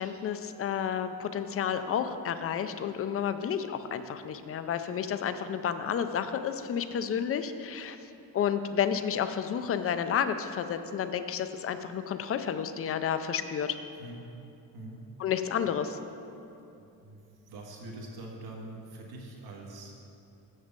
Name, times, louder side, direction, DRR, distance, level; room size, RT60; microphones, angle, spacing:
voice 1, 0.0-8.0 8.3-13.8 15.2-16.0, left 8 dB, 40° left, 10 dB, 0.4 m, -31 dB
voice 2, 16.8-20.0, right 2 dB, 80° right, -1 dB, 1.6 m, -44 dB
7.2 x 6.6 x 6.6 m, 2.7 s
cardioid pair, 155°, 37 cm